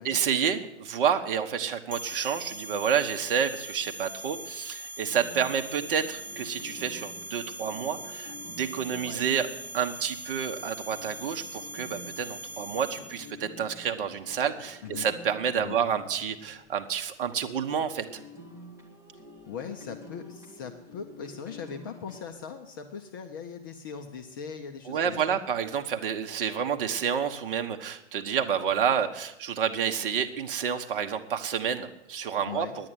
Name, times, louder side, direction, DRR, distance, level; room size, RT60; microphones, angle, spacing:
voice 1, 0.0-9.5 9.7-18.2 24.9-32.9, right 7 dB, 50° right, 6 dB, 1.4 m, -29 dB
sound 1, 1.9-13.3, right 1 dB, 65° right, 1.5 m, -41 dB
sound 2, 5.1-17.2 17.5-22.3, left 1 dB, 5° right, 2.0 m, -49 dB
voice 2, 8.9-9.3 14.8-15.1 15.6-15.8 19.1-25.4 32.5-32.8, left 6 dB, 20° left, 5 dB, 0.4 m, -40 dB
9.9 x 9.9 x 9.3 m, 0.85 s
hypercardioid pair, 150°, 35 cm